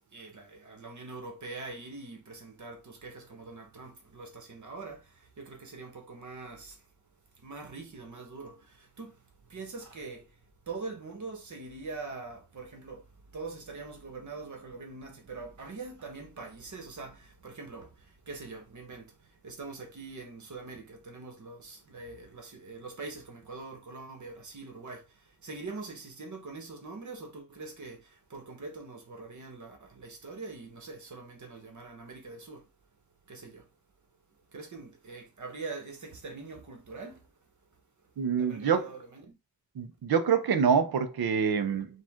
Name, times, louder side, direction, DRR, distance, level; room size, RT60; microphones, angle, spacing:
voice 1, 0.1-5.0 5.4-6.7 7.4-8.5 9.0-9.1 9.5-10.2 10.7-13.0 13.3-17.1 17.4-17.9 18.3-19.0 19.4-25.0 25.4-28.0 28.3-32.6 33.3-33.6 34.5-37.2 38.4-39.2, right 3 dB, 55° right, 1.2 m, -43 dB
voice 2, 38.2-38.9 39.8-41.9, right 6 dB, 80° right, 0.8 m, -26 dB
5.0 x 2.5 x 3.6 m
wide cardioid pair, 165°, 36 cm